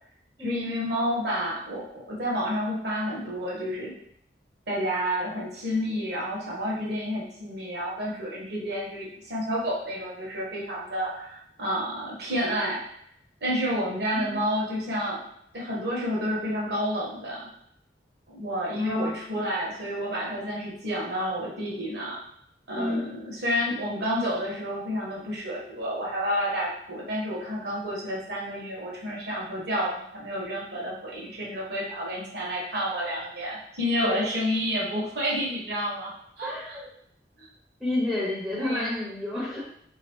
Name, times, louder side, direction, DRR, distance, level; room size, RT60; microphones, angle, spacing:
voice 1, 0.4-3.9 4.7-12.8 13.4-15.2 15.5-17.5 18.3-22.2 22.7-36.1 36.4-36.8 37.4-37.5 38.6-38.9, equal, 75° right, -5 dB, 1.2 m, -30 dB
voice 2, 18.7-19.4 22.8-23.1 34.0-34.3 36.4-36.9 37.8-39.6, left 1 dB, ahead, -6 dB, 0.6 m, -30 dB
3.8 x 3.0 x 2.9 m, 0.71 s
head